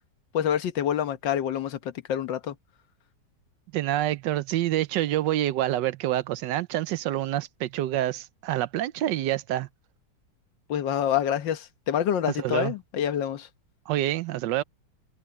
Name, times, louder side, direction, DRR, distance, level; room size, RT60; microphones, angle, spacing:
voice 1, 0.3-2.6 10.7-13.5, left 9 dB, 85° left, 1.8 m, -27 dB
voice 2, 3.7-9.7 12.4-12.7 13.9-14.6, right 13 dB, 80° right, 1.3 m, -27 dB
omnidirectional pair, 1.9 m